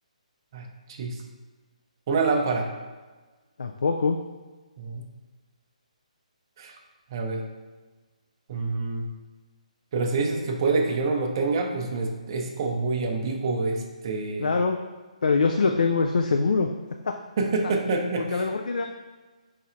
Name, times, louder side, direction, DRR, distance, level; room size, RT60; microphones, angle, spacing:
voice 1, 2.1-2.7 4.8-5.0 6.6-6.8 7.1-7.4 8.5-9.1 9.9-14.6 17.4-18.4, right 3 dB, 35° right, 2 dB, 0.5 m, -26 dB
voice 2, 3.6-4.2 14.4-14.8 15.2-16.7 17.0-17.1 18.2-18.9, left 4 dB, 85° left, 4 dB, 0.3 m, -23 dB
4.1 x 2.4 x 4.3 m, 1.3 s
hypercardioid pair, 165°, 4 cm